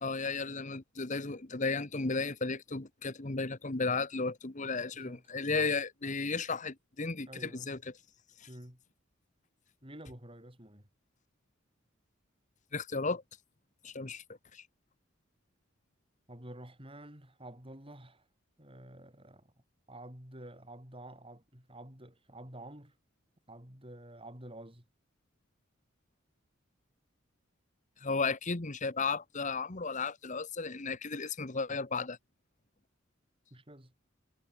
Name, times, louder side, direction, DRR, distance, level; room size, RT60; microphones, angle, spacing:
voice 1, 0.0-7.9 8.4-8.5 12.7-13.2 13.8-14.2 14.5-14.6 28.0-32.2, left 4 dB, 40° left, 1.3 m, -34 dB
voice 2, 7.3-7.7 8.5-8.8 9.8-10.9 16.3-18.2 18.6-19.5 19.9-22.9 23.5-24.9 33.5-33.9, right 1 dB, 25° right, 7.1 m, -49 dB
head